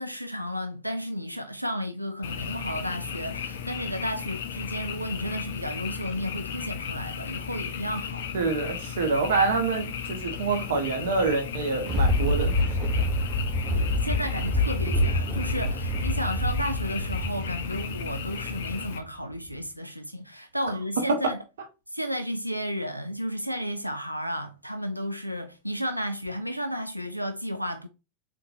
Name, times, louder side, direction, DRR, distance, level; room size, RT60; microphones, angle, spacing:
voice 1, 0.0-8.3 13.7-21.4 21.9-27.9, equal, 90° right, 0.3 m, -33 dB
Frog, 2.2-19.0, left 7 dB, 60° left, 0.5 m, -35 dB
voice 2, 8.3-12.5 12.8-12.9 21.1-21.2, right 4 dB, 60° right, 0.8 m, -26 dB
Thunder, 11.5-19.0 19.5-19.6, left 1 dB, 30° right, 1.0 m, -27 dB
3.7 x 3.4 x 2.7 m
figure-of-eight pair, 90°, 0 cm